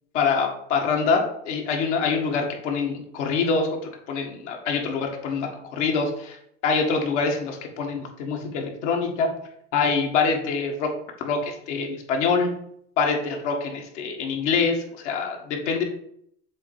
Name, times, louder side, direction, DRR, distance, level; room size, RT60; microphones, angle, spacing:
voice 1, 0.1-6.4 6.6-9.3 9.7-10.9 11.2-12.5 13.0-15.8, left 5 dB, 80° left, 1 dB, 1.8 m, -25 dB
7.3 x 3.2 x 4.9 m, 0.70 s
supercardioid pair, 115°, 35 cm